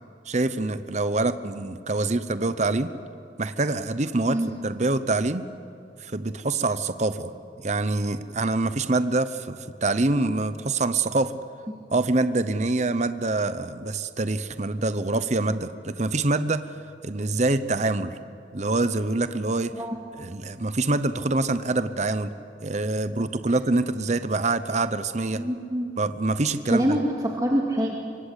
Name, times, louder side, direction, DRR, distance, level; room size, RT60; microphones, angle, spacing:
voice 1, 0.3-2.9 3.4-5.4 6.0-7.3 7.6-11.3 11.9-16.7 17.0-18.2 18.5-19.7 20.2-22.3 22.6-25.4 26.0-27.0, right 2 dB, 40° right, 12 dB, 0.8 m, -25 dB
voice 2, 25.4-25.9 26.7-27.0 27.4-28.0, equal, 20° right, -1 dB, 2.3 m, -24 dB
25.0 x 24.5 x 8.3 m, 2.7 s
head